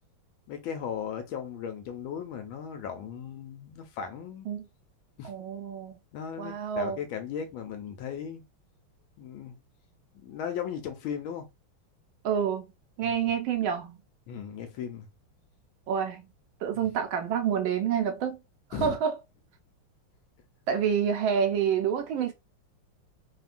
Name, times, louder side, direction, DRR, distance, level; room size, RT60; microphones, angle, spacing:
voice 1, 0.5-4.5 5.2-5.3 6.1-8.4 9.2-9.6 10.2-11.5 13.0-13.1 14.3-15.1 18.7-19.0, left 8 dB, 75° left, 1.3 m, -37 dB
voice 2, 5.2-6.0 6.4-7.0 12.2-12.7 13.0-14.0 15.9-16.2 16.6-18.4 18.7-19.1 20.7-22.3, right 8 dB, 75° right, 1.3 m, -28 dB
3.5 x 2.1 x 2.5 m
omnidirectional pair, 2.4 m